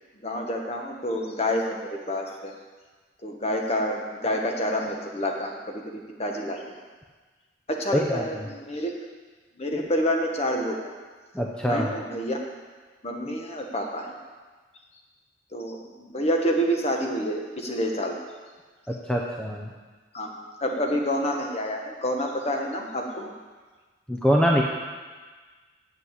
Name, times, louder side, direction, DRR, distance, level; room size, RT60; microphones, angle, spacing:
voice 1, 0.2-1.8 2.1-2.5 3.2-6.6 7.8-8.9 9.6-10.9 11.6-12.4 13.0-14.1 15.5-18.2 20.1-23.3, equal, 35° left, 1 dB, 1.3 m, -28 dB
voice 2, 7.9-8.3 11.3-11.9 18.9-19.7 24.1-24.6, equal, 5° left, -1 dB, 0.7 m, -23 dB
8.2 x 7.6 x 8.2 m, 1.4 s
head